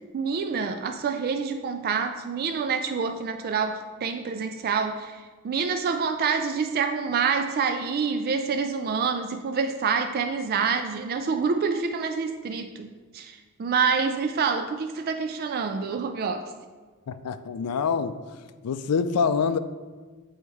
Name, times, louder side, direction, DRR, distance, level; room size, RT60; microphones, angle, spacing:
voice 1, 0.0-16.5, right 5 dB, 45° right, 7 dB, 0.3 m, -27 dB
voice 2, 17.1-18.2 18.6-19.6, left 5 dB, 85° left, 12 dB, 0.4 m, -25 dB
7.0 x 4.3 x 4.7 m, 1.4 s
head